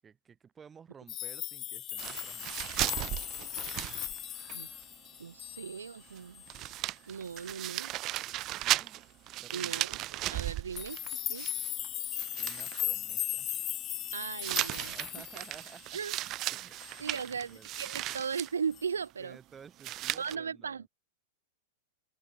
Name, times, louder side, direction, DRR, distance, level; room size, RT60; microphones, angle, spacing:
voice 1, 0.0-2.8 8.6-9.0 9.4-9.9 12.4-13.6 14.8-16.0 16.5-17.7 19.2-20.8, right 6 dB, 20° right, 6.6 m, -54 dB
sound 1, 1.1-6.1 6.3-6.7 7.3-7.6 10.8-16.4 16.8-17.3 17.7-18.1 18.7-18.9, left 13 dB, 35° left, 0.6 m, -38 dB
sound 2, 2.0-4.6 4.8-4.9 6.2-6.3 6.5-11.9 12.2-12.8 14.4-18.5 19.8-20.4, right 16 dB, 40° right, 1.0 m, -36 dB
voice 2, 5.2-6.4 7.1-7.9 9.5-10.0 10.3-11.0 11.3-11.5 14.1-14.9 15.9-16.2 17.0-19.4 20.2-20.9, right 6 dB, 75° right, 1.9 m, -37 dB
figure-of-eight pair, 95°, 0 cm